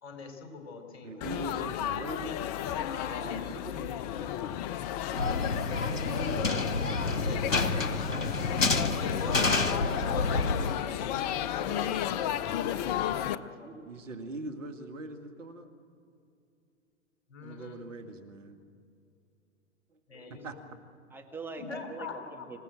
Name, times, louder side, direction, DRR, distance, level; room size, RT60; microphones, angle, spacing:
voice 1, 0.0-2.1 2.9-3.3 7.1-8.5 8.9-13.8 17.3-17.8 20.1-20.6 21.5-22.6, left 4 dB, 55° left, 4 dB, 4.1 m, -43 dB
voice 2, 1.0-2.4 3.7-3.9 5.9-6.4 13.9-15.7 17.4-18.6 19.9-20.0 20.3-20.6, right 2 dB, 75° right, 6 dB, 2.1 m, -41 dB
Laughter / Chatter / Crowd, 1.2-13.4, left 11 dB, 35° left, 0.6 m, -33 dB
voice 3, 3.1-4.3 11.8-11.9 13.3-13.9 20.1-20.4 21.1-22.6, right 3 dB, 5° right, 1 dB, 1.7 m, -45 dB
sound 1, 5.1-10.7, left 3 dB, 90° left, 1.2 m, -29 dB
26.0 x 15.5 x 7.6 m, 2.6 s
figure-of-eight pair, 105°, 38 cm